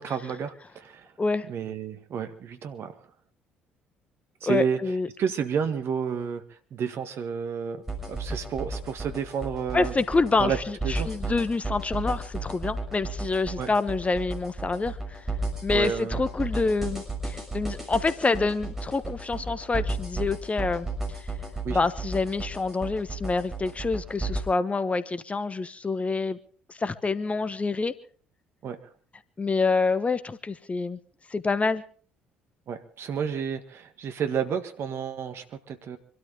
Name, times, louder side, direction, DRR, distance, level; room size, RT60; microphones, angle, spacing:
voice 1, 0.0-1.1 1.5-3.0 4.4-4.8 5.2-6.4 6.7-9.9 10.4-10.6 10.8-11.3 13.6-13.7 15.7-16.2 21.6-21.8 28.6-28.8 32.7-36.0, right 7 dB, 50° right, 8 dB, 1.8 m, -31 dB
voice 2, 4.4-5.1 9.7-15.2 15.6-21.3 21.7-26.4 26.7-27.9 29.4-31.0 31.3-31.8, left 3 dB, 25° left, 13 dB, 1.2 m, -27 dB
sound 1, 7.9-24.4, right 2 dB, 5° right, 6.4 m, -33 dB
25.5 x 13.0 x 3.8 m, 0.44 s
figure-of-eight pair, 50°, 5 cm